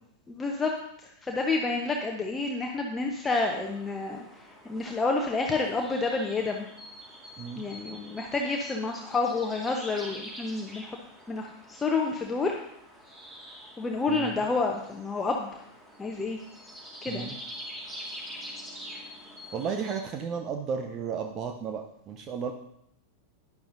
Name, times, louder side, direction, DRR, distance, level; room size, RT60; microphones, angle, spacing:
voice 1, 0.3-0.7 1.2-4.2 4.7-6.7 7.6-11.0 11.3-12.6 13.8-15.5 16.0-16.4 17.0-17.4, left 3 dB, 15° left, 1 dB, 1.0 m, -29 dB
sound 1, 3.2-20.0, equal, 15° right, 3.2 m, -45 dB
voice 2, 14.1-14.5 17.1-17.4 19.5-22.5, right 6 dB, 35° right, 5 dB, 0.7 m, -34 dB
12.0 x 10.5 x 2.7 m, 0.74 s
figure-of-eight pair, 90°, 0 cm